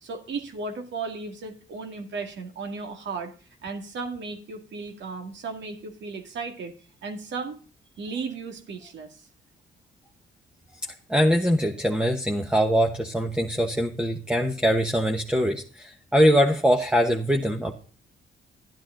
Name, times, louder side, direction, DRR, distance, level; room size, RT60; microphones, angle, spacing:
voice 1, 0.0-3.3 3.6-6.7 7.0-7.6 8.0-9.2, right 4 dB, 65° right, 5 dB, 2.1 m, -35 dB
voice 2, 11.1-17.8, equal, 5° right, 3 dB, 1.2 m, -22 dB
11.5 x 10.0 x 3.8 m, 0.39 s
cardioid pair, 90°, 20 cm